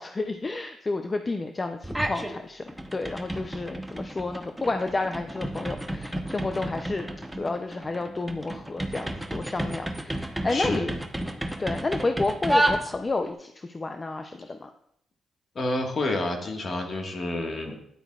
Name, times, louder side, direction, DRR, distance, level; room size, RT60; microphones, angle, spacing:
voice 1, 0.0-7.1 7.3-10.9 11.6-14.7, left 3 dB, 30° left, 6 dB, 0.5 m, -31 dB
sound 1, 1.8-2.3 2.7-13.3, right 1 dB, 5° right, 0.9 m, -31 dB
voice 2, 10.5-10.9 15.5-17.8, left 2 dB, 45° left, 2 dB, 1.6 m, -29 dB
10.0 x 8.7 x 2.4 m, 0.72 s
cardioid pair, 85°, 0 cm